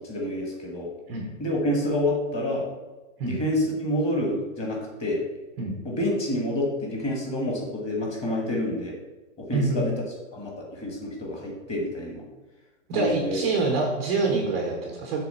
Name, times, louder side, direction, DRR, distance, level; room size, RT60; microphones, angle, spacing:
voice 1, 0.0-0.9 1.4-2.7 3.2-5.2 5.8-8.9 9.4-9.9 10.3-12.2 12.9-13.4, left 1 dB, 15° left, -2 dB, 1.4 m, -28 dB
voice 2, 9.5-9.9 12.9-15.2, right 3 dB, 10° right, 0 dB, 0.4 m, -26 dB
6.9 x 3.5 x 5.4 m, 1.1 s
hypercardioid pair, 150°, 40 cm